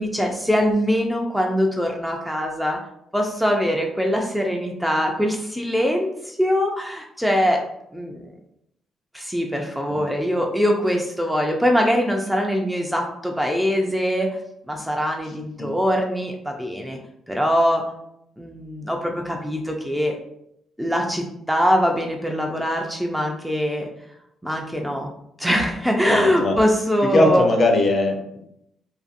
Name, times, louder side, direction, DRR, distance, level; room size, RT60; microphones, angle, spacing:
voice 1, 0.0-2.8 3.1-7.6 7.9-8.3 9.1-14.3 14.7-17.0 17.3-17.8 18.4-20.1 20.8-23.9 24.4-25.1 25.4-27.5, equal, 5° right, 1 dB, 0.4 m, -22 dB
voice 2, 26.1-26.6 27.1-28.4, left 2 dB, 45° left, 2 dB, 0.6 m, -19 dB
2.5 x 2.4 x 2.5 m, 0.77 s
cardioid pair, 90°, 0 cm